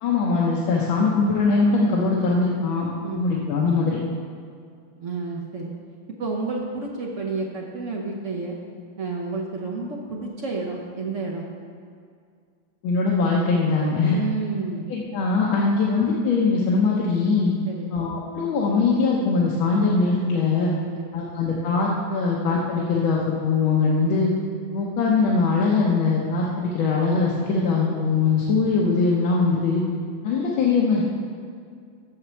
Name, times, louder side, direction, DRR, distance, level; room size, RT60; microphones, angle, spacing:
voice 1, 0.0-2.9 3.2-4.0 12.8-14.2 14.9-17.5 17.9-20.7 21.1-24.3 24.7-29.8 30.2-31.1, left 4 dB, 80° left, -3 dB, 1.7 m, -21 dB
voice 2, 5.0-5.7 6.2-8.6 9.0-11.5 14.0-14.9 17.7-17.9 20.8-21.3, right 3 dB, 50° right, -1 dB, 1.0 m, -30 dB
7.7 x 6.1 x 6.8 m, 2.2 s
omnidirectional pair, 2.2 m